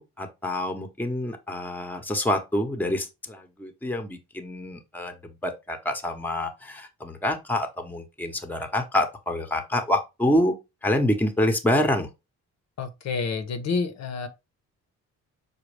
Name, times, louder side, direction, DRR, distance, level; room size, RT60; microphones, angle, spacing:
voice 1, 0.0-10.5 10.8-12.1, left 1 dB, 5° left, 0.8 m, -27 dB
voice 2, 12.8-14.3, left 4 dB, 60° left, 0.7 m, -28 dB
5.0 x 2.3 x 3.2 m
cardioid pair, 90°, 30 cm